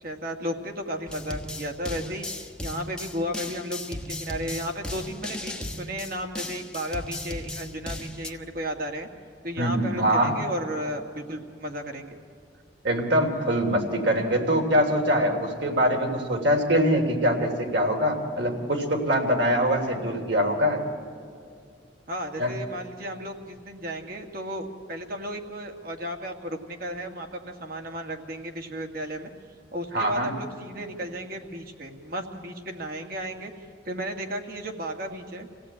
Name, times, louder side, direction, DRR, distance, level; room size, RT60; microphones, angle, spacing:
voice 1, 0.0-9.1 9.4-12.2 22.1-29.3 29.7-33.5 33.9-35.5, equal, 50° right, 3 dB, 2.0 m, -34 dB
sound 1, 1.1-8.3, left 1 dB, 5° left, 1.1 m, -36 dB
voice 2, 9.6-10.4 12.8-20.8 22.4-22.5 29.9-30.3, equal, 70° right, 2 dB, 3.2 m, -23 dB
26.0 x 17.0 x 8.9 m, 2.4 s
head